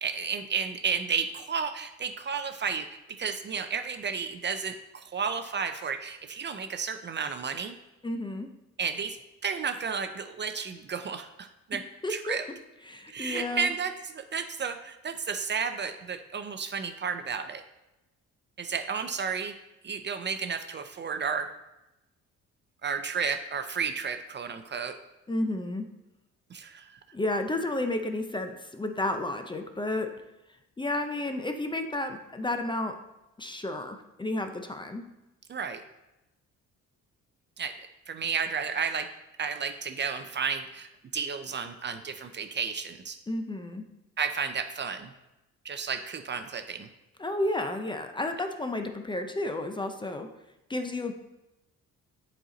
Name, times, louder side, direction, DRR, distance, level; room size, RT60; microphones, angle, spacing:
voice 1, 0.0-7.8 8.8-9.2 9.4-12.4 13.1-17.6 18.6-19.5 19.8-21.5 22.8-25.0 26.5-27.0 35.5-35.8 37.6-37.8 38.1-39.1 39.4-43.2 44.2-45.1 45.6-46.9, right 6 dB, 35° right, 8 dB, 0.5 m, -32 dB
voice 2, 8.0-8.5 12.0-12.4 12.9-13.7 25.3-25.9 27.1-30.1 30.8-32.9 33.4-35.1 43.3-43.8 47.2-50.3 50.7-51.1, left 2 dB, 15° left, 6 dB, 0.6 m, -31 dB
7.4 x 4.2 x 3.9 m, 0.96 s
cardioid pair, 90°, 30 cm